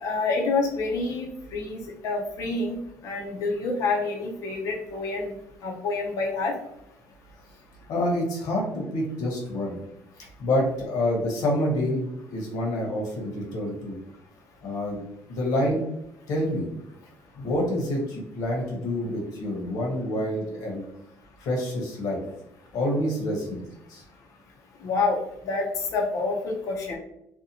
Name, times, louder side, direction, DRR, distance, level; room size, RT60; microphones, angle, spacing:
voice 1, 0.0-5.3 5.6-6.5 24.8-25.2 25.4-25.7 25.9-27.0, left 3 dB, 60° left, 1 dB, 0.5 m, -27 dB
voice 2, 7.9-9.8 10.4-14.0 14.6-15.0 15.3-15.8 16.3-16.7 17.4-20.8 21.4-22.2 22.7-23.6 23.9-24.0, left 1 dB, 75° left, -1 dB, 1.0 m, -27 dB
2.7 x 2.1 x 2.7 m, 0.82 s
cardioid pair, 145°, 6 cm